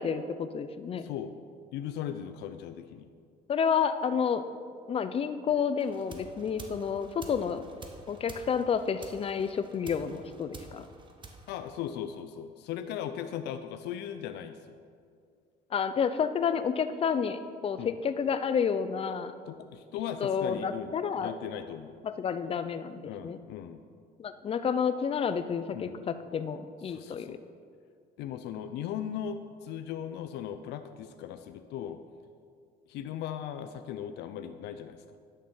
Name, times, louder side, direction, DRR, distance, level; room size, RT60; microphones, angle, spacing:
voice 1, 0.0-1.1 3.5-4.5 4.9-7.6 8.1-10.8 15.7-19.3 20.2-21.3 22.0-23.4 24.2-27.4, left 6 dB, 35° left, 11 dB, 0.5 m, -30 dB
voice 2, 1.0-1.4 1.7-3.1 11.5-14.8 17.8-17.9 19.5-22.0 23.0-23.8 25.7-26.0 26.9-27.4 28.2-32.0 32.9-35.0, left 9 dB, 80° left, 9 dB, 0.5 m, -38 dB
sound 1, 5.8-12.3, right 3 dB, 30° right, 1.1 m, -49 dB
10.5 x 6.6 x 5.6 m, 2.2 s
cardioid pair, 110°, 17 cm